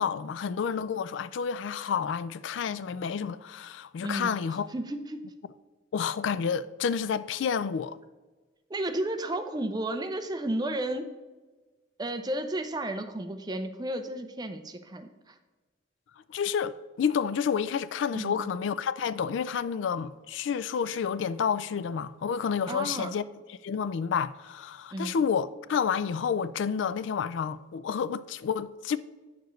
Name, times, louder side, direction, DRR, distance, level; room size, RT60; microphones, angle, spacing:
voice 1, 0.0-4.7 5.9-8.0 16.3-29.0, left 6 dB, 75° left, 0.3 m, -30 dB
voice 2, 4.0-4.3 4.7-5.2 8.7-11.1 12.0-15.4 18.1-18.4 22.7-23.1 24.9-25.2, right 1 dB, 20° right, 0.5 m, -33 dB
9.2 x 6.8 x 3.1 m
head